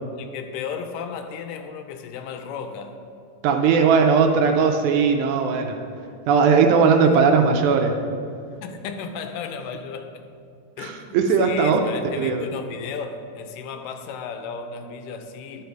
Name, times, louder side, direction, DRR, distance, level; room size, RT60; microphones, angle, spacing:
voice 1, 0.2-3.0 8.6-10.2 10.8-15.6, left 6 dB, 90° left, 7 dB, 2.3 m, -34 dB
voice 2, 3.4-5.7 6.3-8.0 10.8-11.8 12.2-12.4, right 5 dB, 80° right, 4 dB, 1.9 m, -18 dB
11.5 x 4.8 x 4.5 m, 2.3 s
omnidirectional pair, 3.7 m